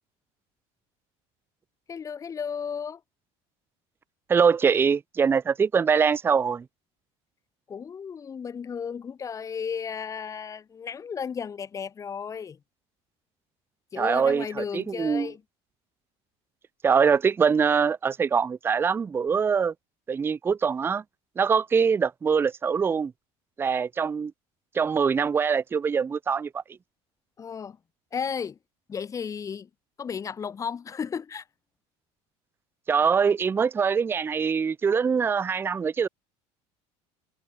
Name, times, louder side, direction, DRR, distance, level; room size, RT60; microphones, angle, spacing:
voice 1, 1.9-3.0 7.7-12.6 13.9-15.4 27.4-27.8 28.1-28.6 28.9-29.7 30.0-31.4, left 6 dB, 25° left, 0.8 m, -34 dB
voice 2, 4.3-6.7 14.0-15.3 16.8-19.7 20.1-21.0 21.4-23.1 23.6-24.3 24.7-26.6 32.9-36.1, right 6 dB, 15° right, 0.4 m, -23 dB
cardioid pair, 130°, 14 cm